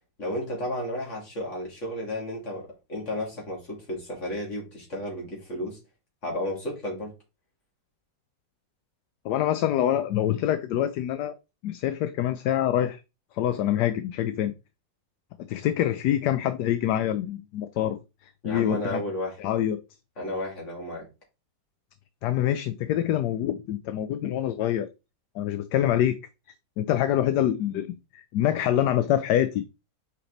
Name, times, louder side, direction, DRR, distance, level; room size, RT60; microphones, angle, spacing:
voice 1, 0.2-5.8 6.2-7.1 18.4-19.4 20.2-21.1, left 1 dB, 40° left, 3.0 m, -33 dB
voice 2, 9.2-11.3 11.6-13.0 13.3-14.5 15.5-18.0 18.4-19.0 19.4-19.8 22.2-24.9 25.3-26.2 26.8-29.6, left 11 dB, 75° left, 1.1 m, -25 dB
6.0 x 4.6 x 3.9 m
omnidirectional pair, 2.0 m